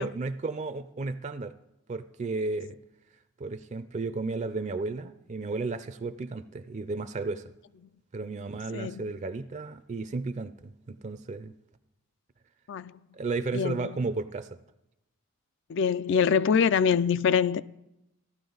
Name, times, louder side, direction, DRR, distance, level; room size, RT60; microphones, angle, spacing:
voice 1, 0.0-1.5 1.9-2.8 3.4-7.5 8.1-11.5 13.1-14.5, right 3 dB, 35° right, 0.4 m, -33 dB
voice 2, 8.7-9.1 12.7-12.9 13.5-13.9 15.7-17.6, left 6 dB, 60° left, 0.3 m, -24 dB
15.5 x 12.0 x 3.9 m
head